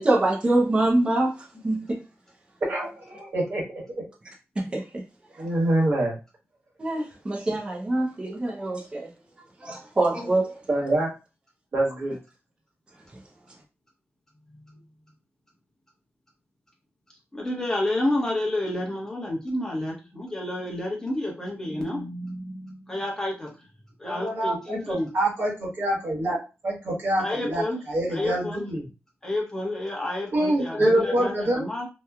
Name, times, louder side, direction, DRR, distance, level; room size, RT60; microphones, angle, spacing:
voice 1, 0.0-1.3 1.6-2.0 4.7-5.0 6.8-9.1 9.6-10.6, right 2 dB, 20° right, 0.5 m, -24 dB
voice 2, 2.7-3.6 5.4-6.2 10.7-11.1 11.7-12.2 24.0-26.4 26.6-28.9 30.3-31.6, right 1 dB, 50° right, 1.2 m, -25 dB
voice 3, 17.3-23.5 24.0-25.1 27.2-27.8 28.1-28.6 29.2-31.9, left 1 dB, 10° left, 0.9 m, -30 dB
2.9 x 2.2 x 2.2 m
wide cardioid pair, 170°, 5 cm